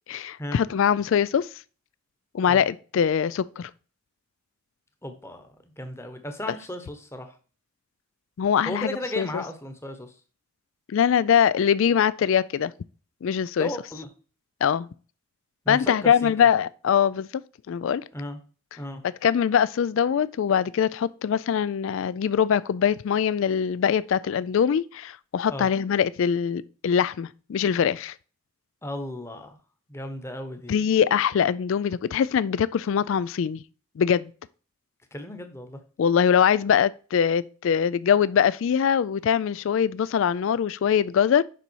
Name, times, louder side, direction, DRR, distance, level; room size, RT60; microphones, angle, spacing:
voice 1, 0.1-1.5 2.3-3.7 6.5-6.6 8.4-9.4 10.9-12.7 13.2-13.7 14.6-14.9 15.7-17.4 17.7-18.0 19.2-28.1 30.7-33.6 34.0-34.3 36.0-41.4, left 8 dB, 60° left, 0.3 m, -23 dB
voice 2, 5.0-7.4 8.6-10.1 13.6-14.1 15.6-16.3 18.1-18.4 18.8-19.0 25.5-25.7 28.8-29.6 29.9-30.7 35.1-35.8, left 1 dB, 10° left, 1.0 m, -35 dB
6.9 x 5.4 x 4.6 m
head